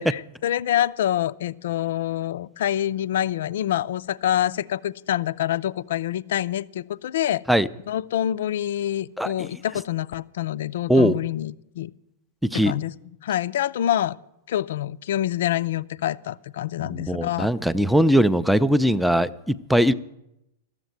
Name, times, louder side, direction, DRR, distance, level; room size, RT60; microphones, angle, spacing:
voice 1, 0.1-7.4 7.9-11.9 12.5-12.9 13.2-14.2 14.5-17.5, left 12 dB, 65° left, 0.4 m, -26 dB
voice 2, 9.2-9.5 10.9-11.2 12.4-12.8 16.8-19.9, equal, ahead, 0.5 m, -20 dB
13.0 x 7.3 x 9.3 m
hypercardioid pair, 100°, 0 cm